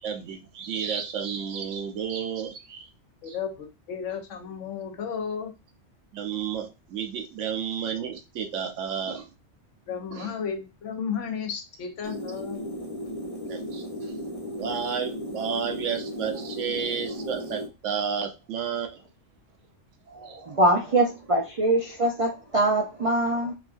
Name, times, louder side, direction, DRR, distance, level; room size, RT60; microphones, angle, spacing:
voice 1, 0.0-2.9 3.3-3.4 6.1-9.3 10.1-10.3 13.4-19.0 20.1-20.6, right 7 dB, 85° right, 1.0 m, -32 dB
voice 2, 3.2-5.5 9.9-12.8, left 7 dB, 85° left, 1.1 m, -33 dB
sound 1, 12.0-17.7, equal, 35° left, 0.7 m, -35 dB
voice 3, 20.4-23.5, right 1 dB, 60° right, 0.3 m, -23 dB
3.5 x 2.3 x 2.4 m
omnidirectional pair, 1.3 m